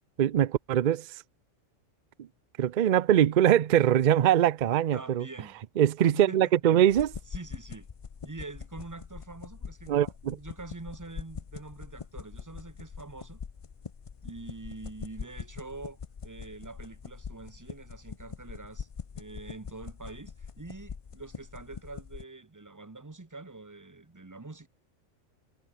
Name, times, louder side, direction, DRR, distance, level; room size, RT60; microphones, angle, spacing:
voice 1, 0.2-1.1 2.2-2.3 2.6-5.3 5.8-7.1 9.9-10.4, right 10 dB, 55° right, 0.5 m, -23 dB
voice 2, 4.9-5.6 6.1-6.5 7.3-7.9 8.2-13.4 14.2-18.9 19.1-24.7, right 3 dB, 15° right, 1.0 m, -45 dB
sound 1, 6.9-22.2, left 6 dB, 40° left, 0.5 m, -43 dB
omnidirectional pair, 1.3 m